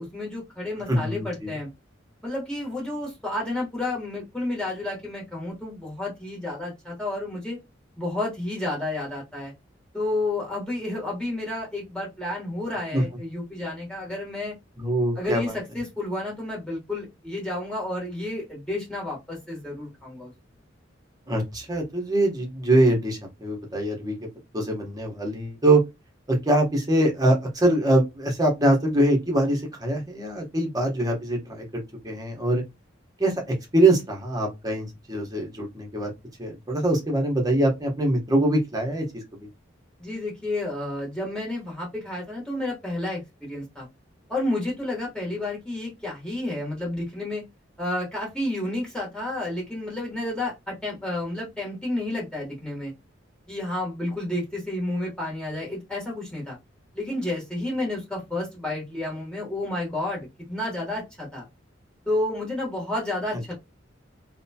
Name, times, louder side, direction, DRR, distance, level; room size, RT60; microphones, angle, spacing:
voice 1, 0.0-1.7 2.2-7.6 8.0-9.5 9.9-14.5 15.2-20.3 40.0-43.9 44.3-47.5 47.8-52.9 53.5-56.6 56.9-61.5 62.0-63.5, left 1 dB, 5° left, 1.1 m, -31 dB
voice 2, 0.9-1.6 12.9-13.0 14.8-15.5 21.3-24.1 24.5-25.8 26.3-32.6 33.2-36.1 36.4-39.1 39.3-39.5, right 1 dB, 20° right, 0.9 m, -23 dB
2.8 x 2.1 x 2.7 m
head